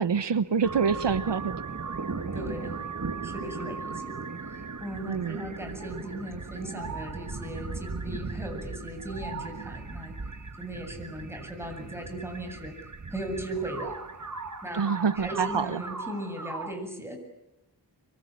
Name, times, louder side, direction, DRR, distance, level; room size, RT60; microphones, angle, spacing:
voice 1, 0.0-1.5 5.1-5.4 14.7-15.8, right 6 dB, 85° right, 13 dB, 1.1 m, -26 dB
sound 1, 0.6-16.7, right 4 dB, 45° right, 1.7 m, -37 dB
voice 2, 2.3-2.8 3.2-10.2 10.6-12.8 13.1-14.0 14.6-14.9 15.2-17.2, right 1 dB, 5° right, 4 dB, 7.8 m, -38 dB
26.5 x 24.0 x 8.7 m, 0.97 s
wide cardioid pair, 70°, 41 cm